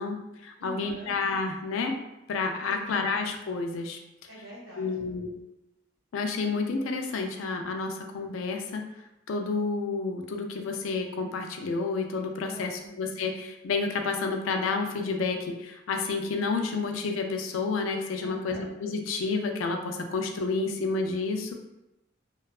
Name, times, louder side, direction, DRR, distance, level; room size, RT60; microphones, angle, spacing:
voice 1, 0.0-2.0 2.3-4.0 4.8-5.3 6.1-8.9 9.3-21.5, left 4 dB, 90° left, 4 dB, 0.4 m, -30 dB
voice 2, 0.6-1.1 2.6-2.9 4.3-5.0 12.4-12.9 18.2-18.7, equal, 80° right, -10 dB, 1.0 m, -45 dB
2.7 x 2.2 x 2.3 m, 0.93 s
head